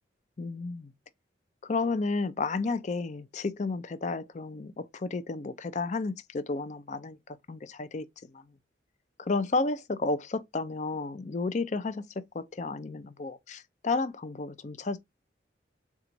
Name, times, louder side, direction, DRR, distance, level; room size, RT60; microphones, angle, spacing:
voice 1, 0.4-0.9 1.6-8.1 8.3-8.4 9.2-15.0, left 3 dB, 40° left, 0.4 m, -32 dB
4.4 x 2.3 x 3.9 m
head